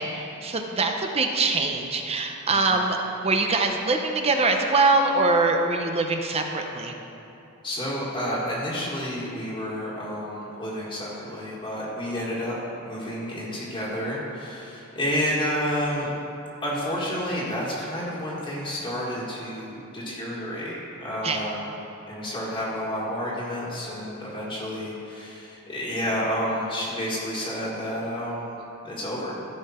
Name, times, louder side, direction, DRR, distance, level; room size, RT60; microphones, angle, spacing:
voice 1, 0.0-3.0 3.2-6.9 21.2-21.4, right 3 dB, 30° right, 3 dB, 0.7 m, -23 dB
voice 2, 2.4-2.8 7.6-16.1 16.6-21.6 22.1-28.6 28.8-29.3, equal, 25° left, -7 dB, 1.7 m, -30 dB
14.5 x 5.5 x 4.3 m, 2.8 s
head